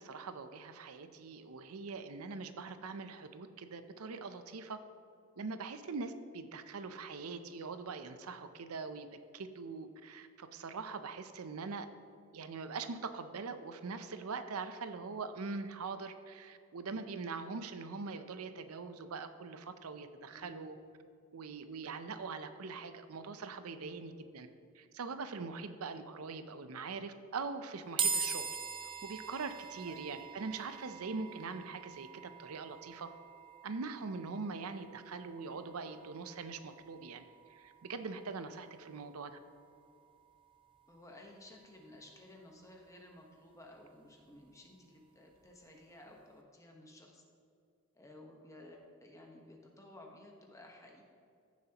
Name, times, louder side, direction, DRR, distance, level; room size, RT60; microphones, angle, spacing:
voice 1, 0.0-4.8 5.4-9.1 9.3-11.9 12.3-20.8 21.3-24.5 24.7-28.4 29.0-33.1 33.6-39.4, right 4 dB, 90° right, 10 dB, 0.6 m, -42 dB
voice 2, 20.3-20.6 29.8-30.0 40.9-47.2 47.9-51.0, left 1 dB, 15° left, 1 dB, 1.1 m, -55 dB
sound 1, 28.0-41.3, right 6 dB, 25° right, 0.5 m, -43 dB
14.5 x 7.3 x 2.9 m, 2.4 s
head